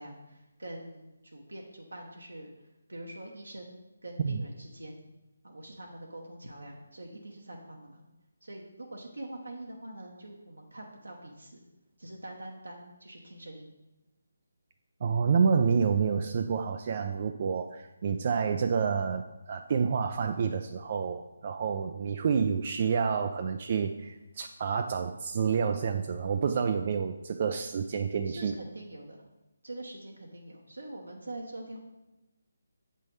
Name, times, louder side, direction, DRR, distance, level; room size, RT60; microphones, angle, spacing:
voice 1, 0.0-2.5 2.9-5.0 5.4-8.0 8.4-11.6 12.0-13.7 28.3-29.2 29.6-31.8, right 1 dB, 85° right, 0 dB, 0.9 m, -44 dB
voice 2, 15.0-28.5, right 6 dB, 40° right, 6 dB, 0.3 m, -28 dB
7.5 x 5.5 x 3.2 m, 1.0 s
figure-of-eight pair, 155°, 0 cm